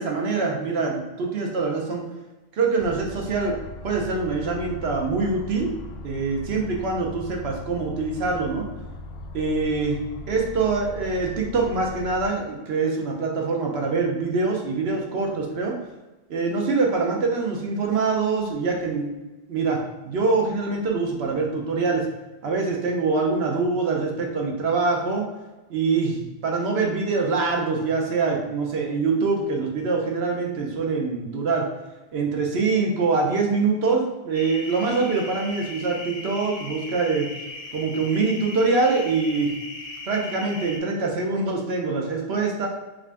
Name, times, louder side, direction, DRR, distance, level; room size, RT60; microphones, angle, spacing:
voice 1, 0.0-2.0 2.5-3.6 3.8-5.7 6.0-8.6 9.3-10.0 10.3-15.7 16.3-19.1 19.5-19.8 20.1-22.1 22.4-25.3 25.7-31.7 32.1-37.3 37.7-39.5 40.1-42.7, right 4 dB, 80° right, 0 dB, 1.0 m, -24 dB
sound 1, 2.8-12.3, left 2 dB, 85° left, 0.8 m, -39 dB
sound 2, 34.3-40.8, left 2 dB, 45° left, 0.6 m, -38 dB
3.5 x 2.5 x 3.3 m, 1.1 s
omnidirectional pair, 1.1 m